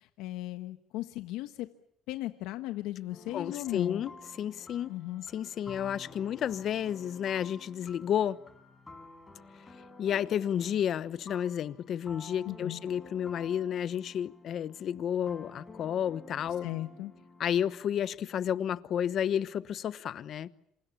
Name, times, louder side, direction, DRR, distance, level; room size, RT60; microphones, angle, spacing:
voice 1, 0.0-1.7 2.1-4.0 4.9-5.2 12.4-12.8 16.6-17.1, left 16 dB, 85° left, 1.2 m, -37 dB
sound 1, 3.1-18.1, left 3 dB, 20° left, 6.8 m, -51 dB
voice 2, 3.3-4.1 4.4-4.9 5.3-8.4 10.0-16.7 17.4-20.5, left 9 dB, 55° left, 1.1 m, -31 dB
28.0 x 27.5 x 7.3 m
cardioid pair, 105°, 0 cm